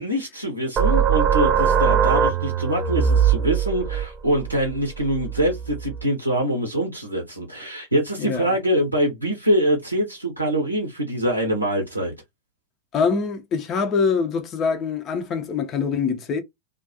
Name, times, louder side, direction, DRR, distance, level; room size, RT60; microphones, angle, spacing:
voice 1, 0.0-12.1, equal, 85° right, 0.7 m, -24 dB
sound 1, 0.8-6.0, right 8 dB, 25° right, 0.4 m, -21 dB
voice 2, 8.2-8.6 12.9-16.4, left 5 dB, 30° left, 0.5 m, -24 dB
2.5 x 2.2 x 2.5 m
figure-of-eight pair, 90°, 0 cm